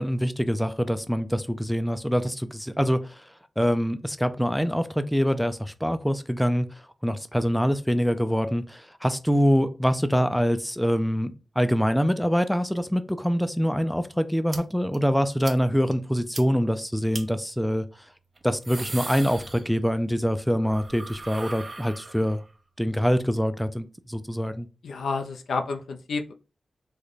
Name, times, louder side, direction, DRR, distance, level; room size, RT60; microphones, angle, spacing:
voice 1, 0.0-3.0 3.6-6.7 7.0-17.9 18.4-22.4 22.8-24.7, equal, ahead, 0.4 m, -24 dB
sound 1, 14.5-14.6 14.9-15.0 15.4-15.6 15.9-16.0 16.3-16.4 17.1-17.2 18.4-20.0 20.3-22.5, right 3 dB, 45° right, 0.7 m, -39 dB
voice 2, 24.8-26.3, left 4 dB, 90° left, 0.4 m, -30 dB
3.2 x 2.2 x 3.9 m
cardioid pair, 60°, 0 cm